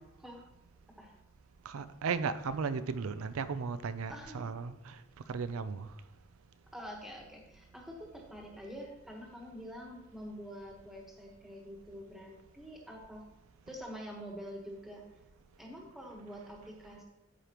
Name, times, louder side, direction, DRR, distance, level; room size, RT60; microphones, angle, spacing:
voice 1, 1.7-5.0 5.3-5.9, right 5 dB, 85° right, 0.4 m, -35 dB
voice 2, 4.1-4.5 6.7-13.2 13.7-15.1 15.6-17.0, equal, ahead, 1.2 m, -46 dB
12.5 x 5.0 x 3.0 m
head